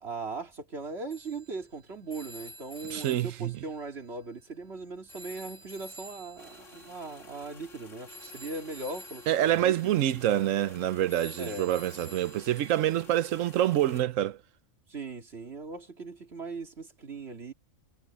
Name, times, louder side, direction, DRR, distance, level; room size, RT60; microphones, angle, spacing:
voice 1, 0.0-9.7 10.3-10.5 11.4-11.7 14.9-17.5, right 3 dB, 55° right, 2.8 m, -39 dB
Telephone, 1.1-4.7 5.1-13.0, equal, 20° left, 5.7 m, -50 dB
voice 2, 2.9-3.6 9.3-14.4, right 12 dB, 90° right, 1.1 m, -26 dB
sound 1, 6.4-14.0, left 2 dB, 70° left, 2.6 m, -52 dB
omnidirectional pair, 1.3 m